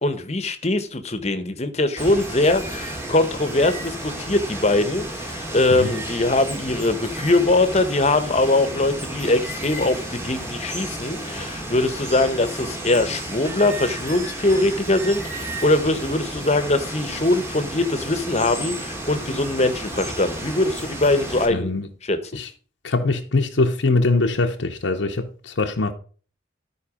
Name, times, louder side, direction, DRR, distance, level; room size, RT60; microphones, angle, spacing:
voice 1, 0.0-21.7 22.1-22.2, left 2 dB, 35° left, 1.0 m, -22 dB
Water, 2.0-21.5, right 1 dB, 15° right, 1.6 m, -32 dB
voice 2, 21.5-21.9 22.3-22.5 22.8-25.9, left 3 dB, 80° left, 0.8 m, -22 dB
13.0 x 4.7 x 4.9 m
head